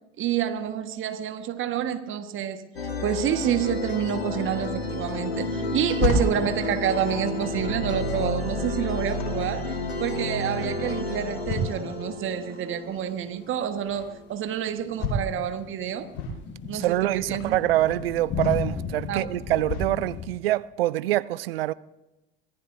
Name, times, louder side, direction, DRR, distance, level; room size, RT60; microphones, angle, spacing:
voice 1, 0.2-16.1 16.6-17.6 19.1-19.2, right 9 dB, 40° right, 1.5 m, -28 dB
sound 1, 2.7-14.2, left 2 dB, 85° left, 1.8 m, -31 dB
sound 2, 5.6-20.0 20.5-20.6, left 2 dB, 55° left, 4.9 m, -34 dB
sound 3, 14.8-20.3, left 6 dB, 35° left, 1.4 m, -35 dB
voice 2, 16.7-21.7, right 15 dB, 70° right, 0.6 m, -25 dB
24.5 x 18.5 x 2.7 m
figure-of-eight pair, 70°, 30 cm